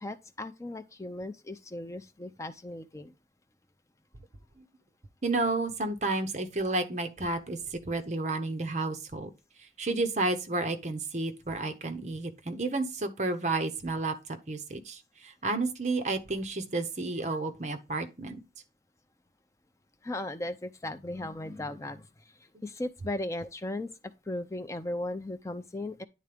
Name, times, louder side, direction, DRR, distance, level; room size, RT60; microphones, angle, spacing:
voice 1, 0.0-3.1 20.0-22.1 22.6-23.9 24.3-26.0, left 1 dB, 15° left, 0.4 m, -36 dB
voice 2, 5.2-9.3 9.8-18.4 22.5-22.6, right 2 dB, 40° right, 0.8 m, -31 dB
10.0 x 3.8 x 3.4 m
head